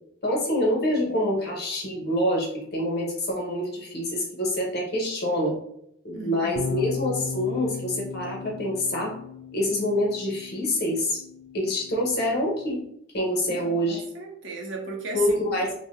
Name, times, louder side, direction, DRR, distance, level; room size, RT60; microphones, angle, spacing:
voice 1, 0.2-5.6 6.0-9.1 9.5-11.2 11.5-12.8 13.1-14.0 15.1-15.7, left 1 dB, 55° left, -1 dB, 0.9 m, -26 dB
voice 2, 6.1-6.8 13.5-15.3, right 3 dB, 70° right, 1 dB, 0.7 m, -36 dB
sound 1, 6.6-12.8, left 6 dB, 70° left, 0.3 m, -36 dB
2.7 x 2.1 x 3.5 m, 0.74 s
head